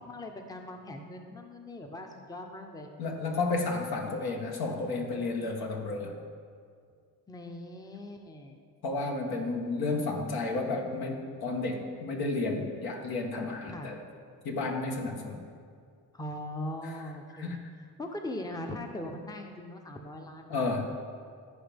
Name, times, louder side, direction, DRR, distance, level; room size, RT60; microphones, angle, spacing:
voice 1, 0.0-2.9 7.3-8.6 13.7-13.9 16.1-17.6 18.0-20.6, left 1 dB, 10° left, 4 dB, 0.7 m, -40 dB
voice 2, 3.0-6.2 8.8-14.0 14.4-15.4 17.4-17.6 20.5-20.9, left 3 dB, 70° left, 1 dB, 1.4 m, -32 dB
14.0 x 5.0 x 3.5 m, 2.1 s
cardioid pair, 80°, 39 cm